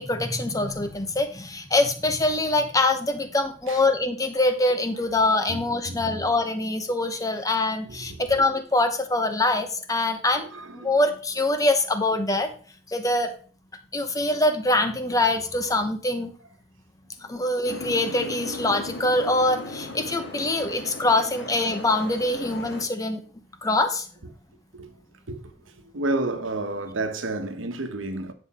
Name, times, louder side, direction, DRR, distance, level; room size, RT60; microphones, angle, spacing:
voice 1, 0.0-10.5 10.7-12.5 12.9-13.3 13.9-16.3 17.3-23.2 23.6-24.1, left 2 dB, 20° left, 1.0 m, -24 dB
voice 2, 5.5-6.3 7.8-8.5 10.4-11.0 15.7-15.8 17.2-17.4 21.1-21.2 24.7-25.0 25.3-28.3, right 2 dB, 90° right, 1.1 m, -32 dB
Boat Water vehicle, 17.7-22.8, left 2 dB, 70° left, 1.7 m, -37 dB
9.5 x 5.4 x 4.3 m
head